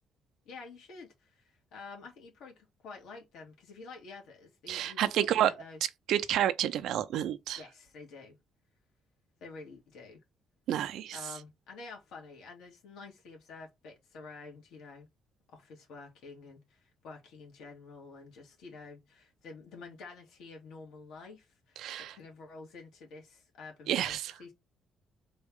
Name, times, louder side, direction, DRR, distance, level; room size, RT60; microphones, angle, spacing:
voice 1, 0.5-5.8 7.6-8.4 9.4-10.2 11.1-15.1 15.5-24.5, left 4 dB, 75° left, 2.4 m, -49 dB
voice 2, 4.7-5.5 6.1-7.6 10.7-11.2 21.8-22.1 23.9-24.3, right 11 dB, 65° right, 0.5 m, -29 dB
4.1 x 3.5 x 3.6 m
cardioid pair, 170°, 0 cm